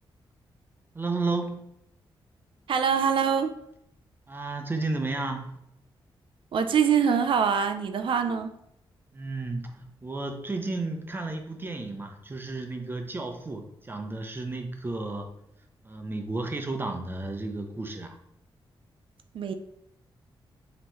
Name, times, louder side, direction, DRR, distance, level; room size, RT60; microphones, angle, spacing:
voice 1, 0.9-1.6 4.3-5.6 9.1-15.3 15.8-18.2, right 3 dB, 25° right, 5 dB, 0.6 m, -33 dB
voice 2, 2.7-3.5 6.5-8.5 19.3-19.5, right 7 dB, 70° right, 8 dB, 0.4 m, -24 dB
5.4 x 3.0 x 3.1 m, 0.77 s
wide cardioid pair, 115°, 9 cm